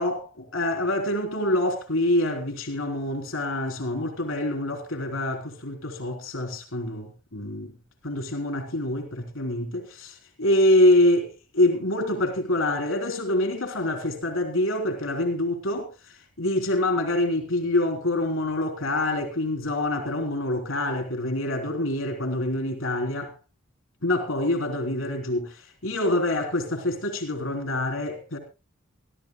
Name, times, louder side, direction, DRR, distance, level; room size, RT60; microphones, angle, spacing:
voice 1, 0.0-7.7 8.0-23.3 24.0-28.4, left 1 dB, 75° left, 3.6 m, -26 dB
24.0 x 14.5 x 2.2 m
head